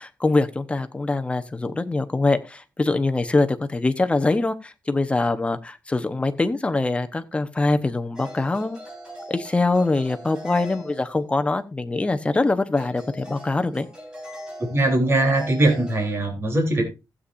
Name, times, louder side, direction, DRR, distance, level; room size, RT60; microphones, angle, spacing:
voice 1, 0.0-8.8 9.3-13.9, left 3 dB, 15° left, 9 dB, 1.0 m, -23 dB
sound 1, 8.2-11.5 12.7-16.2, equal, 10° right, 5.2 m, -41 dB
voice 2, 14.6-16.8, right 1 dB, 35° right, 1 dB, 3.5 m, -21 dB
15.5 x 8.6 x 2.6 m, 0.25 s
wide cardioid pair, 130°, 7 cm